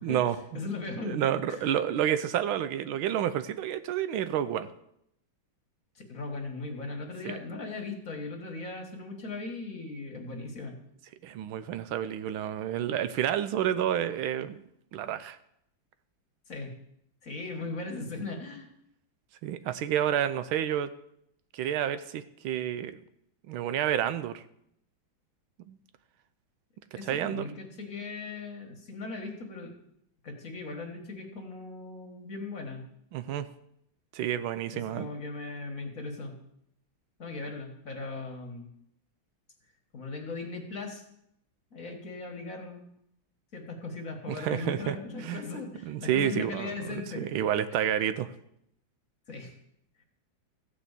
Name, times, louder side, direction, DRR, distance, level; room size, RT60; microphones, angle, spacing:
voice 1, 0.0-0.4 1.0-4.7 7.2-7.4 11.2-14.6 14.9-15.4 19.4-20.9 21.5-23.0 23.5-24.4 25.7-25.8 27.1-27.5 33.1-33.5 34.1-35.1 44.3-44.9 45.2-45.4 45.8-48.3, right 10 dB, 90° right, 12 dB, 1.5 m, -29 dB
voice 2, 0.5-1.2 1.5-1.6 6.0-10.7 16.5-16.7 17.2-18.7 26.9-29.7 30.2-32.8 34.7-36.4 37.2-38.7 39.9-41.0 41.7-42.9 43.5-47.4 49.3-49.6, left 3 dB, 45° left, 2 dB, 2.0 m, -38 dB
14.5 x 5.3 x 8.2 m, 0.76 s
omnidirectional pair, 2.2 m